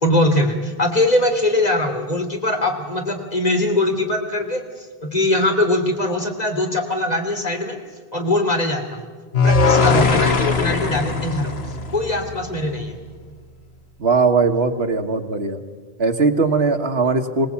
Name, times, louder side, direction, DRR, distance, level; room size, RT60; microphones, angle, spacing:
voice 1, 0.0-7.8 8.1-9.0 9.4-11.5 11.9-13.0, left 1 dB, 40° left, 3 dB, 3.2 m, -21 dB
sound 1, 9.3-12.5, left 4 dB, 80° left, 1.7 m, -19 dB
voice 2, 14.0-15.6 16.0-17.5, right 4 dB, 85° right, 4 dB, 1.9 m, -19 dB
25.5 x 18.5 x 8.6 m, 1.5 s
omnidirectional pair, 1.0 m